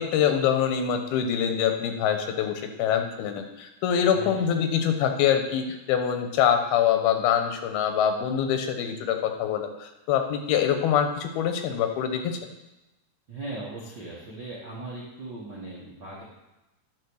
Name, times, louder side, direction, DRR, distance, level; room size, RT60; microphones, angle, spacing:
voice 1, 0.0-12.4, left 8 dB, 85° left, 6 dB, 2.8 m, -25 dB
voice 2, 4.1-4.4 13.3-16.2, right 2 dB, 60° right, -7 dB, 1.1 m, -38 dB
10.0 x 4.5 x 6.2 m, 0.98 s
omnidirectional pair, 4.4 m